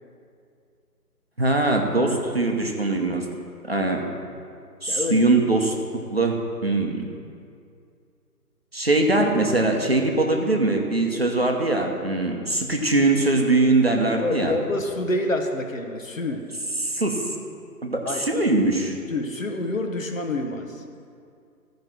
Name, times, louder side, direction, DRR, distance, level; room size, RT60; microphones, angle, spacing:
voice 1, 1.4-3.2 3.7-4.0 4.8-7.1 8.7-14.6 16.8-17.3 17.8-19.0, right 2 dB, 40° right, 2 dB, 0.9 m, -22 dB
voice 2, 4.9-5.3 14.2-16.4 18.0-18.2 19.1-20.8, left 2 dB, 55° left, 4 dB, 1.1 m, -27 dB
14.0 x 5.2 x 6.0 m, 2.4 s
figure-of-eight pair, 170°, 49 cm